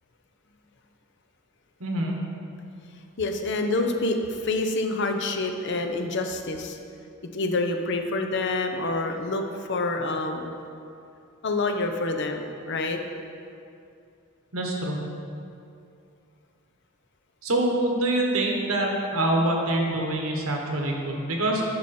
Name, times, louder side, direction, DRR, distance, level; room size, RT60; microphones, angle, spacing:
voice 1, 1.8-2.1 14.5-15.0 17.4-21.6, right 1 dB, 80° right, 0 dB, 1.3 m, -25 dB
voice 2, 3.2-6.8 7.3-10.5 11.4-13.0, left 2 dB, 55° left, 5 dB, 0.7 m, -27 dB
9.4 x 6.0 x 4.3 m, 2.6 s
head